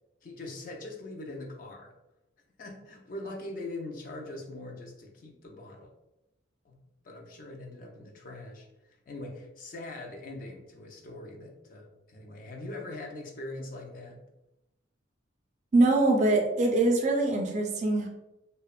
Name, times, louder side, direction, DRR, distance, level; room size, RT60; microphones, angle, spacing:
voice 1, 0.2-1.9 2.6-5.9 6.6-6.8 7.0-14.2, left 2 dB, 45° left, 1 dB, 0.4 m, -42 dB
voice 2, 15.7-18.1, right 2 dB, 35° right, 2 dB, 0.3 m, -23 dB
2.8 x 2.1 x 2.3 m, 0.93 s
head